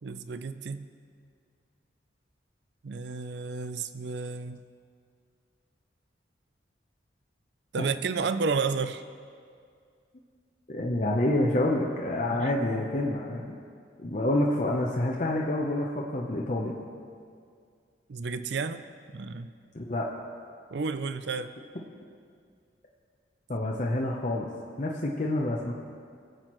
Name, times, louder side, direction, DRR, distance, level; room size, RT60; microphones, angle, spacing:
voice 1, 0.0-0.9 2.8-4.6 7.7-9.0 12.3-12.5 18.1-18.8 19.1-19.5 20.7-21.5, right 4 dB, 65° right, 12 dB, 0.4 m, -31 dB
voice 2, 10.7-13.5 14.0-16.8 19.7-20.1 23.5-24.5 24.8-25.7, left 1 dB, 40° left, -2 dB, 0.7 m, -28 dB
19.5 x 7.7 x 3.1 m, 2.2 s
head